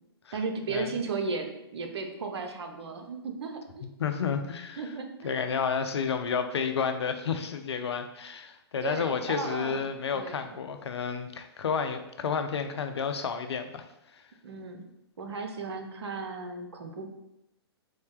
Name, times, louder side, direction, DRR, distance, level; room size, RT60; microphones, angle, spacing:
voice 1, 0.3-3.9 4.8-5.5 8.8-9.8 10.1-10.6 14.4-14.8 15.2-17.1, right 4 dB, 75° right, 5 dB, 0.6 m, -35 dB
voice 2, 4.0-4.8 5.2-13.8, left 6 dB, 80° left, 7 dB, 0.4 m, -31 dB
3.8 x 2.2 x 3.1 m, 0.86 s
hypercardioid pair, 125°, 14 cm